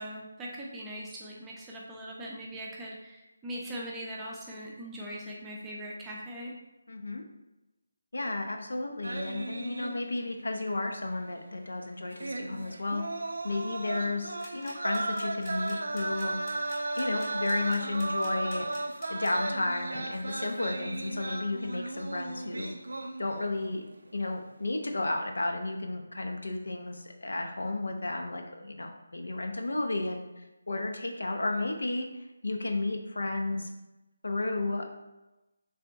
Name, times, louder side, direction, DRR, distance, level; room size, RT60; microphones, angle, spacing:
voice 1, 0.0-6.5, equal, 10° right, -4 dB, 0.5 m, -40 dB
voice 2, 6.9-7.2 8.1-13.0 13.4-16.4 17.0-18.7 19.1-22.7 23.2-23.8 24.1-33.7 34.2-34.8, left 2 dB, 65° left, 3 dB, 0.5 m, -33 dB
sound 1, 9.0-10.4 10.7-10.8 12.1-23.6 23.9-24.2, right 2 dB, 60° right, 0.4 m, -35 dB
sound 2, 14.3-19.3, left 2 dB, 25° left, 0.8 m, -49 dB
3.4 x 3.3 x 3.0 m, 1.0 s
figure-of-eight pair, 155°, 0 cm